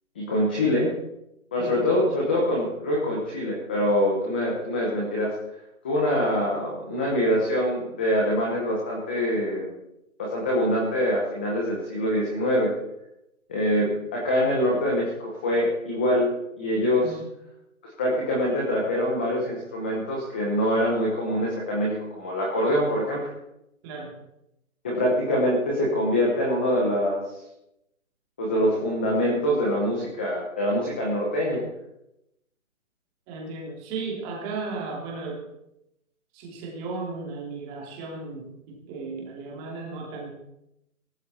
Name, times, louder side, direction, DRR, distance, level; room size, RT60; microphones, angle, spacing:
voice 1, 0.2-0.9 1.5-5.3 5.8-9.7 10.2-12.7 13.5-16.3 16.6-17.1 18.0-23.3 24.8-27.2 28.4-31.6, equal, 5° left, -3 dB, 0.9 m, -24 dB
voice 2, 23.8-24.2 33.3-35.4 36.3-40.3, right 4 dB, 10° right, -1 dB, 2.7 m, -35 dB
17.5 x 15.5 x 4.3 m, 0.84 s
hypercardioid pair, 170°, 42 cm